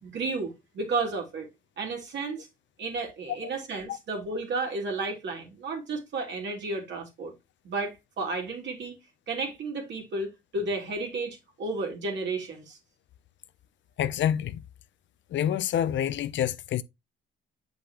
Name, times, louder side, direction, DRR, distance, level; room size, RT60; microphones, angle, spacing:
voice 1, 0.0-1.5 1.8-2.5 2.8-7.3 7.6-9.0 9.3-12.8, right 3 dB, 65° right, 2.9 m, -32 dB
voice 2, 14.0-14.6 15.3-16.8, left 10 dB, 70° left, 0.6 m, -27 dB
7.8 x 5.2 x 2.9 m
cardioid pair, 90°, 20 cm